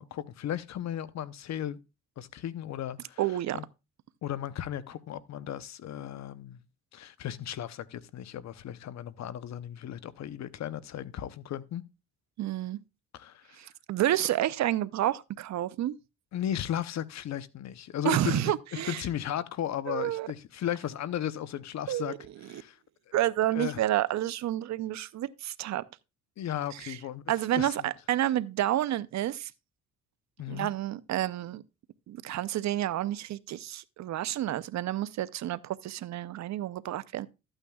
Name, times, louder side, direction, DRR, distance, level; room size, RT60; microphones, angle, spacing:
voice 1, 0.0-1.8 2.2-3.2 3.5-3.7 4.2-6.6 6.9-11.8 13.1-13.6 16.3-22.1 22.4-22.8 23.1-23.2 23.5-23.8 26.4-27.2 27.6-27.9 30.4-30.7, left 10 dB, 60° left, 0.8 m, -35 dB
voice 2, 3.2-3.6 12.4-12.8 13.6-16.0 18.0-19.0 19.9-20.3 21.9-22.2 23.1-25.8 26.8-27.0 27.3-29.5 30.5-31.6 32.1-37.3, right 13 dB, 65° right, 0.6 m, -29 dB
13.0 x 8.9 x 2.3 m
cardioid pair, 90°, 30 cm